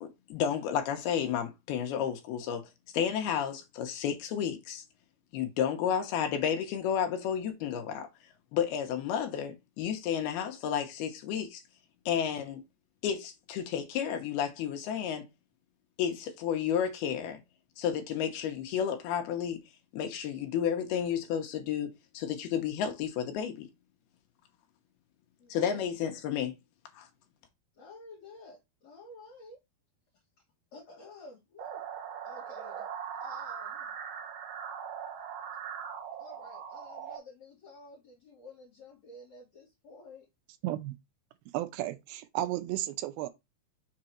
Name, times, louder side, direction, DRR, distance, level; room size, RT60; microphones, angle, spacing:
voice 1, 0.0-2.7 2.9-4.8 5.3-8.1 8.5-11.6 12.1-12.6 13.0-15.2 16.0-17.4 17.8-19.6 19.9-23.7 25.5-26.5 26.9-27.1, left 8 dB, 75° left, 3.0 m, -31 dB
voice 2, 25.4-25.8 27.8-29.6 30.7-31.8 32.2-32.8 33.2-33.9 36.2-40.3, left 2 dB, 45° left, 3.2 m, -51 dB
sound 1, 31.6-37.2, right 8 dB, 60° right, 2.4 m, -40 dB
voice 3, 40.6-41.0 41.5-43.3, right 14 dB, 80° right, 2.4 m, -33 dB
6.7 x 3.8 x 4.4 m
omnidirectional pair, 4.6 m